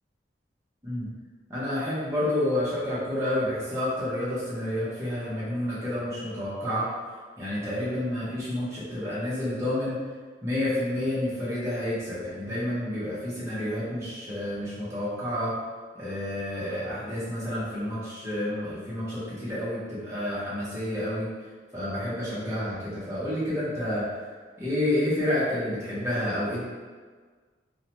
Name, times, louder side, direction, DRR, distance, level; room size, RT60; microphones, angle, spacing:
voice 1, 1.5-6.9 7.4-10.0 10.4-15.5 16.0-21.3 21.7-24.1 24.6-26.6, left 1 dB, 15° right, -10 dB, 0.7 m, -29 dB
2.7 x 2.1 x 2.9 m, 1.5 s
head